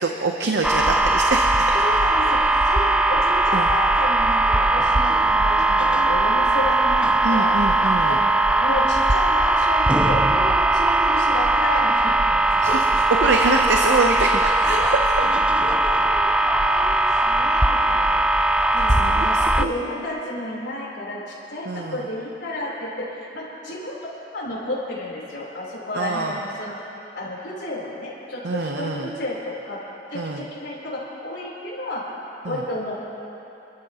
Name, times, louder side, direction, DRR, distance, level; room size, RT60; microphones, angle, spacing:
voice 1, 0.0-2.0 2.3-2.5 3.5-3.7 7.2-8.2 12.6-15.0 19.0-19.7 21.7-22.1 25.9-26.4 28.4-29.1 30.1-30.5 32.4-32.6, right 3 dB, 70° right, 3 dB, 0.8 m, -25 dB
sound 1, 0.6-19.7, right 2 dB, 5° right, 0.3 m, -19 dB
voice 2, 1.7-7.5 8.0-8.3 8.6-12.8 14.1-14.2 14.7-14.9 15.2-18.2 18.7-24.0 24.3-29.8 30.1-32.0 32.5-33.0, left 1 dB, 80° left, -6 dB, 3.8 m, -31 dB
28.0 x 13.0 x 3.0 m, 3.0 s
head